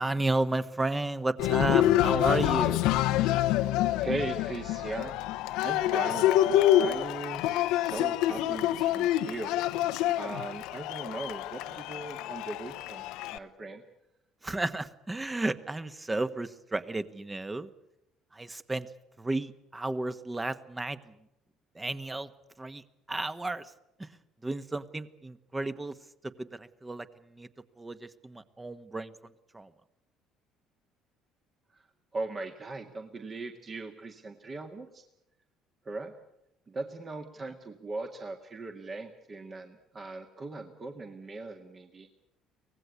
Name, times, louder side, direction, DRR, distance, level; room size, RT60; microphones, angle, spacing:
voice 1, 0.0-2.9 14.4-17.7 18.3-18.9 19.2-21.2 21.7-22.3 22.6-23.7 24.0-24.2 24.4-26.0 26.2-27.5 27.8-29.7, right 2 dB, 15° right, 12 dB, 1.4 m, -33 dB
Cheering, 1.4-13.4, left 13 dB, 60° left, 0.8 m, -27 dB
voice 2, 4.0-5.1 5.6-6.3 6.8-9.5 10.2-13.8 31.7-31.8 32.1-35.0 35.9-36.1 36.7-42.1, right 3 dB, 35° right, 4 dB, 1.9 m, -39 dB
25.0 x 18.5 x 8.3 m, 0.84 s
figure-of-eight pair, 55°, 0 cm